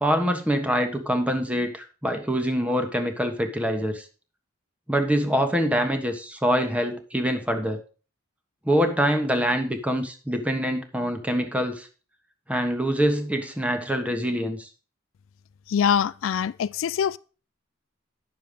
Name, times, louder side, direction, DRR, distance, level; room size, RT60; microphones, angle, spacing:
voice 1, 0.0-4.0 4.9-7.8 8.6-11.9 12.5-14.7, equal, 5° right, 1.3 m, -25 dB
voice 2, 15.7-17.2, left 8 dB, 80° left, 0.3 m, -24 dB
9.8 x 6.7 x 5.2 m
head